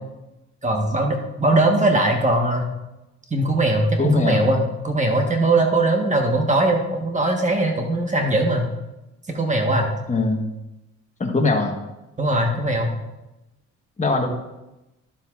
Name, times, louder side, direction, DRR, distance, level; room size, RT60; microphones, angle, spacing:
voice 1, 0.6-2.7 3.3-8.7 9.3-9.9 12.2-12.9, right 2 dB, 25° right, 2 dB, 1.3 m, -20 dB
voice 2, 4.0-4.5 10.1-10.4 11.2-11.8 14.0-14.3, left 3 dB, 25° left, 2 dB, 1.3 m, -21 dB
11.0 x 7.6 x 2.5 m, 0.98 s
cardioid pair, 90°, 30 cm